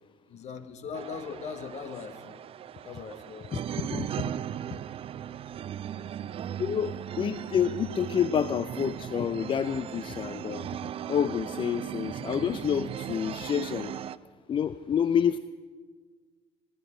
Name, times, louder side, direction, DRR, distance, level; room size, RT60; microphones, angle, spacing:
voice 1, 0.3-2.4 2.8-3.7, left 6 dB, 55° left, 10 dB, 1.2 m, -40 dB
sound 1, 0.9-14.2, right 10 dB, 45° right, 0.5 m, -37 dB
voice 2, 3.5-4.3 4.7-4.8 6.6-10.8 11.1-14.0 14.5-15.4, left 8 dB, 35° left, 13 dB, 0.5 m, -28 dB
20.5 x 10.5 x 5.0 m, 1.5 s
hypercardioid pair, 60°, 14 cm